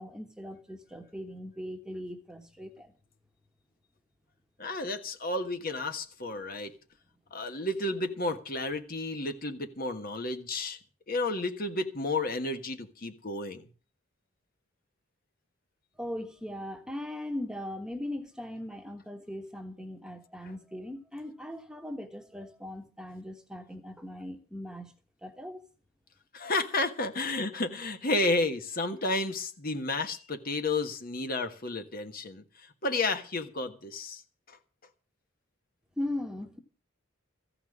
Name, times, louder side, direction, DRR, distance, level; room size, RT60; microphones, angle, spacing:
voice 1, 0.0-2.9 16.0-24.9 25.2-25.6 36.0-36.6, left 1 dB, 5° right, 1.4 m, -39 dB
voice 2, 4.6-6.7 7.3-10.8 11.1-13.6 26.3-32.4 32.8-34.2 34.5-34.6, left 2 dB, 45° left, 1.5 m, -31 dB
15.0 x 5.8 x 9.8 m
head